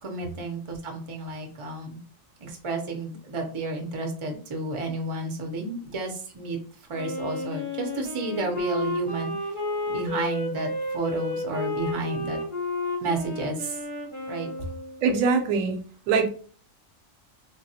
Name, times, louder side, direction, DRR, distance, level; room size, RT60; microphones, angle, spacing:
voice 1, 0.0-2.0 2.4-9.6 9.9-12.4 13.0-13.8 14.3-14.7, right 2 dB, 35° right, 2 dB, 0.4 m, -31 dB
Wind instrument woodwind instrument, 6.9-15.1, left 2 dB, 25° left, 0.8 m, -32 dB
voice 2, 15.0-15.8 16.1-16.3, right 5 dB, 75° right, 6 dB, 0.9 m, -22 dB
3.5 x 2.2 x 2.7 m, 0.42 s
omnidirectional pair, 1.4 m